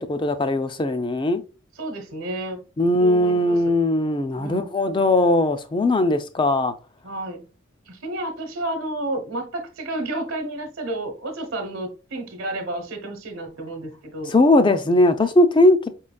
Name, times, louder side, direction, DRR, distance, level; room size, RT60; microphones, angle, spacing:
voice 1, 0.0-1.4 2.8-6.7 14.3-15.9, left 1 dB, 25° left, 0.4 m, -19 dB
voice 2, 1.8-2.6 3.0-3.6 4.4-4.7 7.0-7.4 7.9-14.3, right 1 dB, 70° right, 1.0 m, -31 dB
5.0 x 3.8 x 2.2 m
head